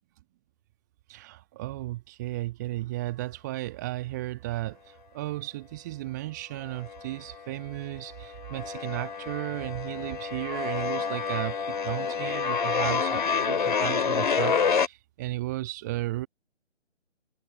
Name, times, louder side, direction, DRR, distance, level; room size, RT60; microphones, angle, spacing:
voice 1, 1.1-16.3, right 17 dB, 15° right, 1.5 m, -34 dB
sound 1, 6.6-7.4 7.7-14.9, left 6 dB, 40° left, 2.6 m, -28 dB
figure-of-eight pair, 145°, 35 cm